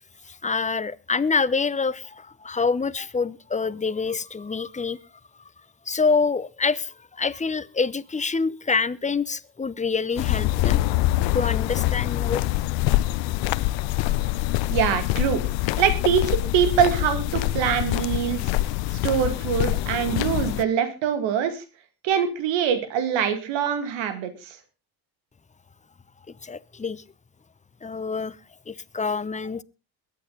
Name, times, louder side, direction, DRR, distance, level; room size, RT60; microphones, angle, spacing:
voice 1, 0.2-5.0 5.9-10.8 11.3-12.5 26.3-27.0 27.8-28.4 28.7-29.6, left 4 dB, 15° left, 0.8 m, -26 dB
sound 1, 10.2-20.6, left 16 dB, 75° left, 0.7 m, -25 dB
voice 2, 14.7-15.4 15.8-18.5 18.9-21.6 22.0-24.6, right 8 dB, 80° right, 2.3 m, -24 dB
22.5 x 9.2 x 3.8 m
supercardioid pair, 65°, 44 cm